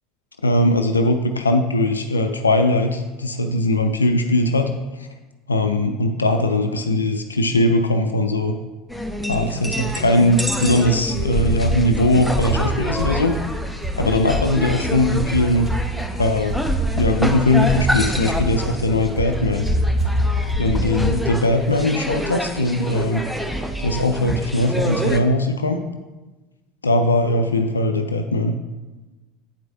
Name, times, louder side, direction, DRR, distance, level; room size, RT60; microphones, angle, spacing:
voice 1, 0.4-4.7 5.5-8.5 9.3-13.4 14.0-15.7 16.2-16.6 17.0-19.7 20.6-23.3 23.8-25.8 26.8-28.6, left 1 dB, 80° left, 6 dB, 0.3 m, -20 dB
sound 1, 8.9-25.2, equal, ahead, 0.5 m, -28 dB
sound 2, 10.7-21.3, right 1 dB, 30° right, 1.8 m, -25 dB
8.8 x 4.6 x 2.7 m, 1.2 s
figure-of-eight pair, 75°, 0 cm